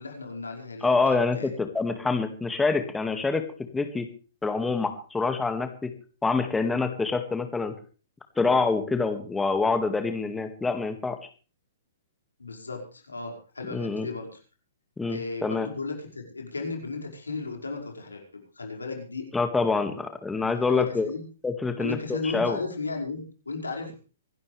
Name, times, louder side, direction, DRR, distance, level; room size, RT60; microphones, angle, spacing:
voice 1, 0.0-1.5 12.4-14.4 15.1-19.3 20.3-21.2 21.8-24.0, left 3 dB, 90° left, 2 dB, 5.4 m, -35 dB
voice 2, 0.8-3.4 3.7-4.1 4.4-5.9 6.2-7.7 8.4-11.2 13.7-14.1 15.0-15.7 19.3-21.1 21.4-22.6, left 4 dB, 10° left, 7 dB, 2.0 m, -26 dB
25.0 x 12.0 x 3.4 m, 0.36 s
hypercardioid pair, 120°, 0 cm